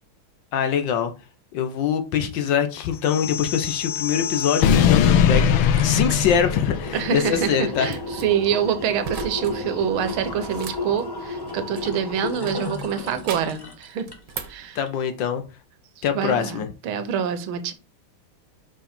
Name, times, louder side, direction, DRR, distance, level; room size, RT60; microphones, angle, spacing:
voice 1, 0.5-1.1 1.5-7.9 14.7-15.4 16.0-16.7, left 8 dB, 70° left, 1.3 m, -23 dB
sound 1, 3.0-7.4, left 8 dB, 85° left, 1.5 m, -21 dB
sound 2, 5.6-14.5 14.9-15.0, left 2 dB, 30° left, 0.4 m, -33 dB
voice 2, 6.9-14.1 14.5-14.8 16.0-17.7, right 8 dB, 80° right, 1.7 m, -26 dB
sound 3, 7.9-8.2 9.0-9.6 9.9-12.0 12.5-13.6 14.1-14.7, right 7 dB, 65° right, 1.5 m, -38 dB
5.2 x 4.9 x 4.3 m
omnidirectional pair, 2.3 m